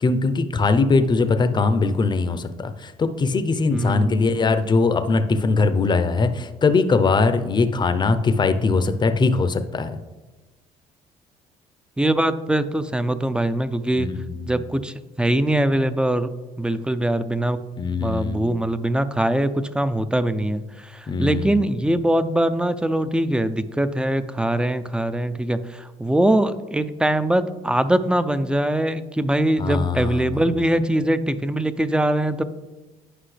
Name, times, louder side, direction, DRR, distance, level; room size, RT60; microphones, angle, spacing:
voice 1, 0.0-9.9 14.0-14.6 17.8-18.4 21.1-21.6 29.6-30.4, left 4 dB, 30° left, 9 dB, 0.7 m, -21 dB
voice 2, 3.7-4.4 12.0-14.1 14.5-16.3 16.6-17.6 18.0-32.4, right 1 dB, 5° right, 12 dB, 0.5 m, -22 dB
9.9 x 5.4 x 3.3 m, 1.2 s
supercardioid pair, 75°, 15 cm